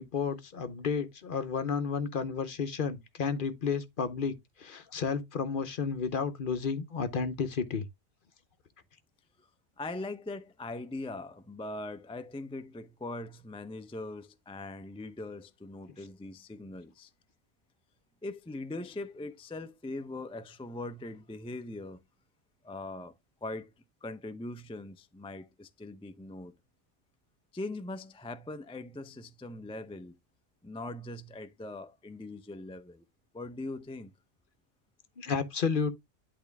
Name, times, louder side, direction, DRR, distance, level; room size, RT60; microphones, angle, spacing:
voice 1, 0.0-7.9 35.2-35.9, left 5 dB, 50° left, 0.9 m, -32 dB
voice 2, 9.8-17.1 18.2-22.0 22.6-23.1 23.4-23.7 24.0-26.5 27.5-30.2 30.6-33.1 33.3-34.1, left 2 dB, 10° left, 0.3 m, -41 dB
10.5 x 3.8 x 3.4 m
omnidirectional pair, 1.2 m